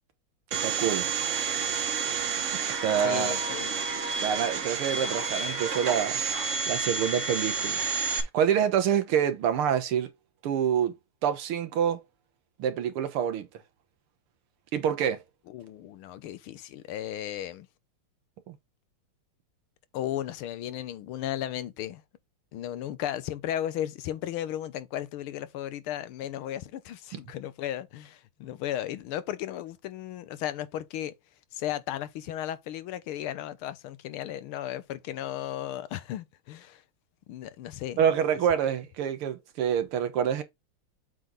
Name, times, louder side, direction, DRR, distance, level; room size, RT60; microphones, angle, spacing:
Domestic sounds home sounds, 0.5-8.2, right 5 dB, 45° right, 1.2 m, -30 dB
voice 1, 0.6-1.1 2.8-3.3 4.2-6.2 6.7-7.8 8.2-10.1 10.4-10.9 11.2-12.0 12.6-13.5 14.7-15.2 18.5-18.6 27.1-27.2 38.0-40.4, right 8 dB, 80° right, 2.0 m, -26 dB
voice 2, 3.0-3.7 15.5-17.7 19.9-22.0 22.5-31.1 31.5-36.8 37.3-38.0 38.6-38.7, left 12 dB, 80° left, 1.6 m, -35 dB
7.8 x 3.7 x 3.9 m
omnidirectional pair, 2.4 m